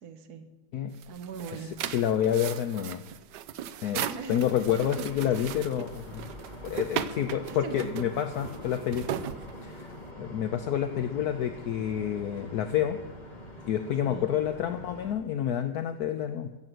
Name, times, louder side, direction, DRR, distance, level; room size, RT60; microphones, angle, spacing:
voice 1, 0.0-0.5 1.1-1.9 4.1-4.5 5.0-5.1 6.6-6.7 7.3-8.1 14.0-14.3, right 6 dB, 60° right, 6 dB, 1.5 m, -41 dB
sound 1, 0.9-10.0, right 10 dB, 75° right, 1.2 m, -37 dB
voice 2, 1.5-3.0 3.8-6.3 6.6-9.0 9.6-9.9 10.2-13.0 13.7-16.5, left 10 dB, 70° left, 8 dB, 1.0 m, -29 dB
sound 2, 4.4-15.1, left 1 dB, 25° left, 1.8 m, -45 dB
14.5 x 7.8 x 7.8 m, 1.1 s
omnidirectional pair, 2.0 m